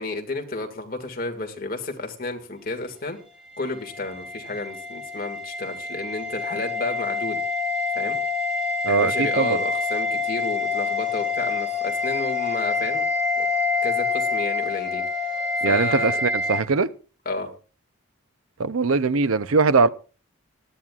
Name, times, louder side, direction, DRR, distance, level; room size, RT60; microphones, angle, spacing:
voice 1, 0.0-3.2 3.6-7.4 7.9-8.2 8.9-13.0 13.4-13.5 13.8-16.2 17.3-17.5, left 2 dB, 40° left, 2.0 m, -31 dB
sound 1, 3.5-16.6, left 3 dB, ahead, 1.7 m, -26 dB
voice 2, 8.8-9.6 15.6-16.9 18.6-19.9, right 4 dB, 75° right, 0.6 m, -21 dB
19.5 x 12.5 x 2.4 m
head